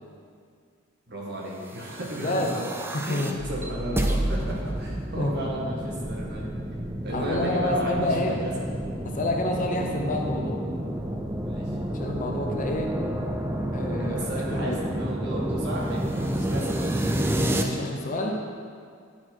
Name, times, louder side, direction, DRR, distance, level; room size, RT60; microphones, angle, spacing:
voice 1, 1.1-2.7 3.0-6.4 6.7-8.7 11.4-11.7 13.9-16.7, right 1 dB, 55° right, -3 dB, 1.5 m, -34 dB
sound 1, 1.9-17.6, right 1 dB, 10° right, 0.4 m, -30 dB
voice 2, 2.0-2.7 2.9-3.4 5.2-5.3 7.1-8.4 9.0-10.6 11.9-12.9 13.7-14.9 17.5-18.4, left 1 dB, 40° left, 1 dB, 0.7 m, -29 dB
Thunder / Rain, 3.2-17.1, equal, 65° left, 2.0 m, -47 dB
9.7 x 4.3 x 4.5 m, 2.2 s
head